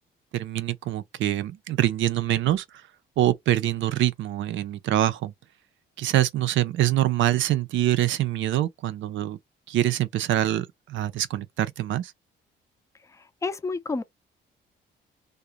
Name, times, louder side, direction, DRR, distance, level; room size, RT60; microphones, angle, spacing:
voice 1, 0.3-2.6 3.2-5.3 6.0-9.4 9.7-12.1, right 13 dB, 75° right, 0.5 m, -25 dB
voice 2, 13.4-14.0, left 3 dB, 15° left, 0.4 m, -29 dB
2.5 x 2.1 x 2.8 m
cardioid pair, 90°, 20 cm